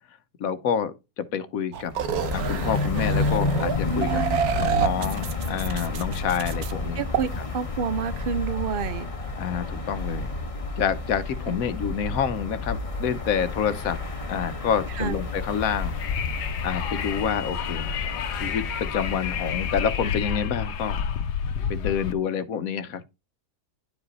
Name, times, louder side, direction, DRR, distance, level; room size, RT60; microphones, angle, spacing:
voice 1, 0.4-1.9 2.3-4.2 4.6-7.0 9.4-10.3 10.8-15.9 16.6-18.0 18.3-21.0 21.7-23.0, left 7 dB, 65° left, 1.2 m, -28 dB
sound 1, 1.7-6.7 7.1-7.2, right 8 dB, 70° right, 1.3 m, -28 dB
sound 2, 1.9-20.2, left 3 dB, 25° left, 1.1 m, -31 dB
voice 2, 3.8-4.4 7.0-9.1 11.5-11.6 14.9-15.2, right 6 dB, 50° right, 0.7 m, -29 dB
Wind, 15.5-22.1, left 7 dB, 90° left, 1.4 m, -30 dB
10.5 x 5.1 x 4.1 m
omnidirectional pair, 1.7 m